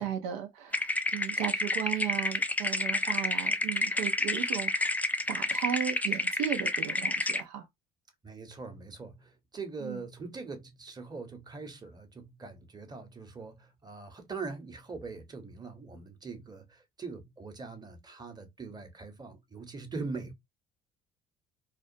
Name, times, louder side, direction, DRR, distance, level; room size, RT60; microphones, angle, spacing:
voice 1, 0.0-4.9 5.3-7.7 9.8-10.0, right 10 dB, 80° right, 0.6 m, -35 dB
sound 1, 0.7-7.4, left 2 dB, 10° left, 0.3 m, -30 dB
voice 2, 8.2-20.3, right 4 dB, 20° right, 0.9 m, -42 dB
2.4 x 2.2 x 2.6 m
hypercardioid pair, 65°, 20 cm